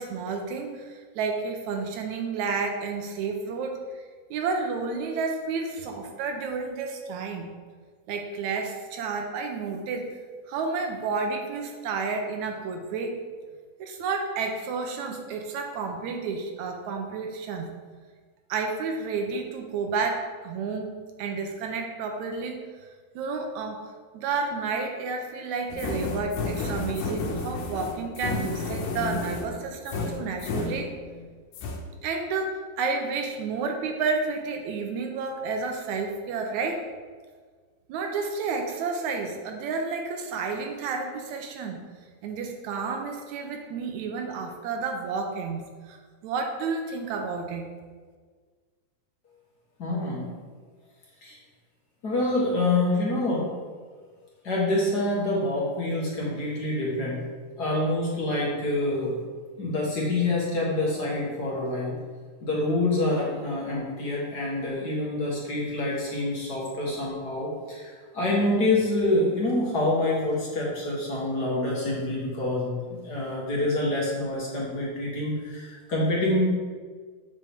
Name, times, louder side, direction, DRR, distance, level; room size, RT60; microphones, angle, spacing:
voice 1, 0.0-3.8 4.3-7.5 8.1-10.1 10.5-13.2 13.8-17.7 18.5-22.6 23.2-30.9 32.0-36.8 37.9-41.8 42.2-46.0 46.2-47.7, right 4 dB, 80° right, 3 dB, 2.0 m, -31 dB
sound 1, 25.7-31.3 31.5-31.8, left 3 dB, 90° left, 2.5 m, -32 dB
voice 2, 49.8-50.3 51.2-51.4 52.0-53.4 54.4-57.2 57.6-59.1 59.6-61.9 62.4-76.5, left 2 dB, 45° left, -5 dB, 1.4 m, -26 dB
7.5 x 6.6 x 3.5 m, 1.5 s
omnidirectional pair, 3.5 m